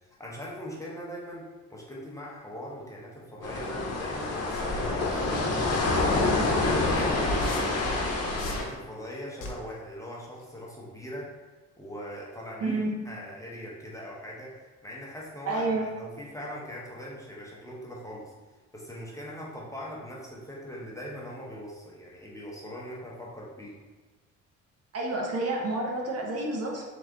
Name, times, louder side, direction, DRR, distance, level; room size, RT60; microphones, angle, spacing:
voice 1, 0.2-1.4 1.7-8.0 8.3-11.3 11.8-12.8 13.0-18.3 18.7-23.8, equal, 10° left, -5 dB, 1.0 m, -41 dB
sound 1, 3.4-8.6, left 2 dB, 55° left, 0.9 m, -27 dB
sound 2, 6.6-6.7 7.4-7.8 8.4-8.7 9.4-9.7 10.4-10.6, left 3 dB, 85° left, 0.8 m, -39 dB
voice 2, 12.6-12.9 15.5-15.9 24.9-26.8, right 2 dB, 55° right, -2 dB, 0.9 m, -29 dB
3.6 x 3.1 x 3.8 m, 1.3 s
cardioid pair, 90°, 30 cm